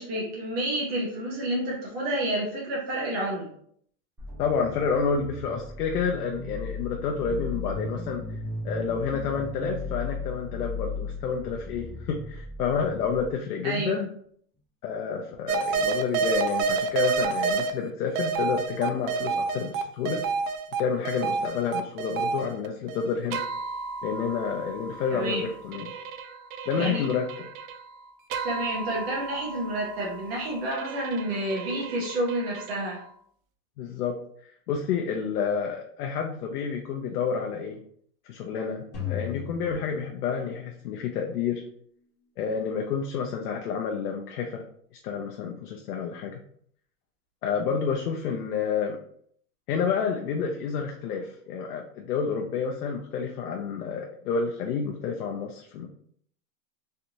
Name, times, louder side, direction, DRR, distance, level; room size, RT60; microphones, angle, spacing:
voice 1, 0.0-3.5 13.6-14.0 25.1-25.4 26.8-27.0 28.4-33.0, right 1 dB, 40° right, -3 dB, 0.9 m, -29 dB
sound 1, 4.2-13.3, left 3 dB, 5° right, 0.5 m, -36 dB
voice 2, 4.4-8.2 8.6-14.1 14.8-20.2 20.8-23.4 24.0-25.9 26.7-27.3 33.8-37.8 38.2-41.6 42.4-44.6 45.0-46.4 47.4-49.0 49.7-55.9, left 6 dB, 85° left, 2 dB, 0.6 m, -29 dB
sound 2, 15.5-17.7 18.2-33.1, right 5 dB, 65° right, 0.5 m, -31 dB
sound 3, 38.9-41.1, left 9 dB, 25° left, 1.3 m, -36 dB
3.3 x 2.6 x 2.8 m, 0.64 s
supercardioid pair, 160°, 45 cm